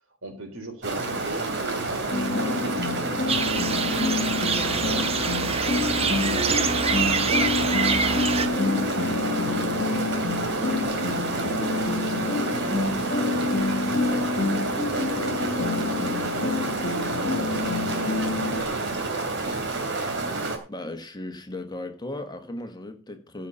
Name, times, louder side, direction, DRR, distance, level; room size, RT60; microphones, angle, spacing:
voice 1, 0.2-3.9 4.5-5.1 5.7-6.7 7.0-10.7 11.3-12.2 12.5-13.4 14.0-16.1 16.4-17.2 17.6-19.8, right 2 dB, 80° right, 3.9 m, -40 dB
sound 1, 0.8-20.6, right 3 dB, 60° right, 2.8 m, -29 dB
sound 2, 2.1-18.6, left 3 dB, 50° left, 1.8 m, -28 dB
sound 3, 3.3-8.5, right 5 dB, 30° right, 1.0 m, -26 dB
voice 2, 20.7-23.5, left 1 dB, 20° left, 1.4 m, -36 dB
15.0 x 5.8 x 5.5 m
head